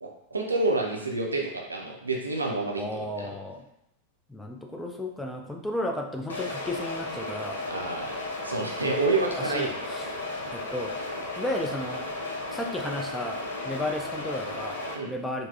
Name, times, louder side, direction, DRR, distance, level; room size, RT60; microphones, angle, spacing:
voice 1, 0.0-3.3 7.7-8.1 8.4-9.7 14.9-15.1, right 3 dB, 80° right, 0 dB, 0.4 m, -28 dB
voice 2, 2.8-3.7 4.3-7.7 9.4-10.2 10.5-11.0 11.4-12.1 12.5-14.8 15.1-15.5, left 1 dB, 5° left, 2 dB, 0.3 m, -33 dB
sound 1, 6.3-14.9, left 2 dB, 70° left, 0.5 m, -34 dB
3.4 x 2.0 x 2.3 m, 0.83 s
figure-of-eight pair, 90°, 0 cm